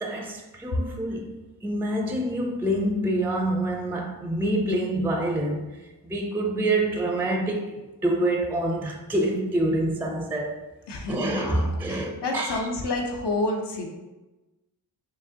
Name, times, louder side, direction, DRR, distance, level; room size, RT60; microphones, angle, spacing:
voice 1, 0.0-5.7 6.0-7.8 8.0-10.6 11.1-12.7, right 1 dB, 5° right, 0.4 m, -26 dB
voice 2, 10.9-13.9, left 2 dB, 85° left, 0.8 m, -29 dB
4.8 x 2.8 x 2.8 m
wide cardioid pair, 90°, 40 cm